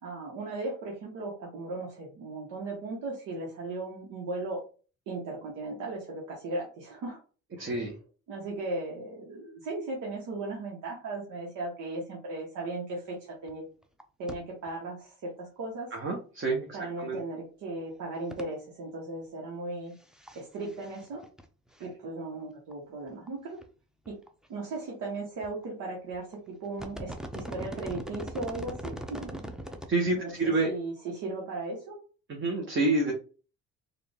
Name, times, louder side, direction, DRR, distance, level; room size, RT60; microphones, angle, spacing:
voice 1, 0.0-4.6 5.1-7.2 7.6-7.8 8.3-13.6 14.2-15.9 16.7-20.0 20.3-21.2 21.8-23.6 24.1-24.2 24.5-29.4 30.1-32.0, right 2 dB, 90° right, -3 dB, 1.1 m, -37 dB
voice 2, 7.6-7.9 15.9-16.7 17.0-17.2 29.9-30.7 32.3-33.1, right 2 dB, 40° right, 0 dB, 1.0 m, -28 dB
sound 1, 13.5-13.6 13.8-14.0 14.3-14.4 14.7-14.8 17.0-17.1 18.3-18.4 20.0-20.4 20.7-21.4 21.8-21.9 22.7-22.8 23.3-23.4 23.6-23.7 24.1-24.5 25.4-25.6 26.1-26.3 26.7-29.9 30.3-30.4, right 1 dB, ahead, 0.5 m, -40 dB
3.9 x 2.4 x 3.4 m, 0.37 s
cardioid pair, 90°, 30 cm